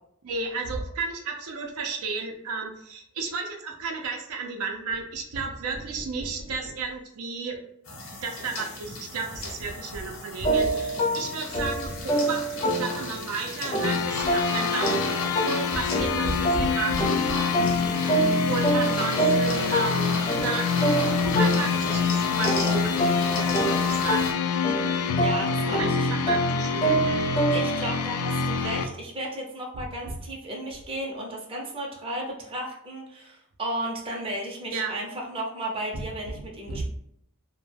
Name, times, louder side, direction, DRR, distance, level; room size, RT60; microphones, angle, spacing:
voice 1, 0.2-7.6 8.2-18.2 18.5-20.7 21.2-24.4 25.8-27.3 29.7-29.8 34.7-34.9 35.9-36.0 36.7-36.8, right 4 dB, 85° right, 2 dB, 0.5 m, -33 dB
sound 1, 7.9-24.3, left 1 dB, 65° left, 0.7 m, -35 dB
sound 2, 10.4-13.3 13.7-22.1 22.4-27.9, right 1 dB, 30° left, 0.5 m, -27 dB
sound 3, 13.8-28.8, left 6 dB, 85° left, 0.3 m, -26 dB
voice 2, 25.2-26.1 27.5-36.9, right 1 dB, 25° right, -2 dB, 0.5 m, -34 dB
2.2 x 2.1 x 3.2 m, 0.73 s
head